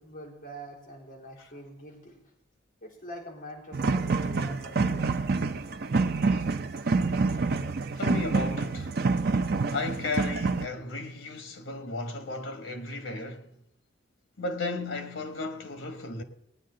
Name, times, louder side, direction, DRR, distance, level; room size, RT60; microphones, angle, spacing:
voice 1, 0.0-2.2 2.8-5.2, right 1 dB, 45° left, 3.5 m, -44 dB
sound 1, 3.7-10.7, right 4 dB, 50° right, 0.5 m, -27 dB
voice 2, 7.9-9.0 9.7-13.5 14.4-16.2, left 3 dB, 85° left, 1.3 m, -34 dB
19.0 x 9.6 x 3.9 m
head